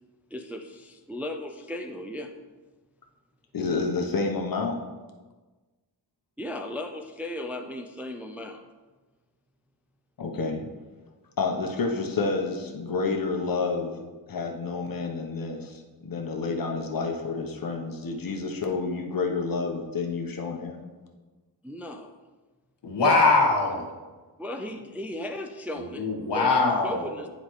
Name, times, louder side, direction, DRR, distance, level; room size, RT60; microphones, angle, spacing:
voice 1, 0.3-2.3 6.4-8.6 21.6-22.1 24.4-26.1 26.3-27.3, left 1 dB, 5° right, 4 dB, 0.3 m, -36 dB
voice 2, 3.5-4.8 10.2-10.7 11.4-14.0 14.3-20.8, left 4 dB, 55° left, 2 dB, 1.0 m, -29 dB
voice 3, 22.8-23.9 25.7-27.1, left 3 dB, 80° left, -1 dB, 1.5 m, -22 dB
9.8 x 4.0 x 3.1 m, 1.3 s
wide cardioid pair, 100°, 41 cm